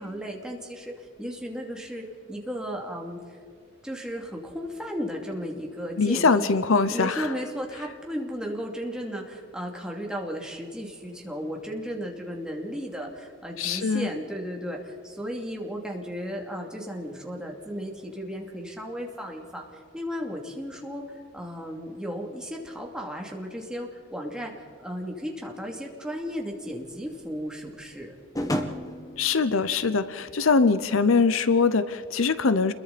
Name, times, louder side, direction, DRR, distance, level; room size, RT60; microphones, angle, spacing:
voice 1, 0.0-3.4 3.8-6.6 6.9-28.1, equal, 5° right, 0 dB, 2.7 m, -35 dB
voice 2, 6.0-7.3 13.6-14.1 29.2-32.7, left 4 dB, 75° left, 13 dB, 0.8 m, -22 dB
sound 1, 26.3-31.0, equal, 15° left, 1.3 m, -35 dB
29.0 x 22.0 x 4.2 m, 2.1 s
head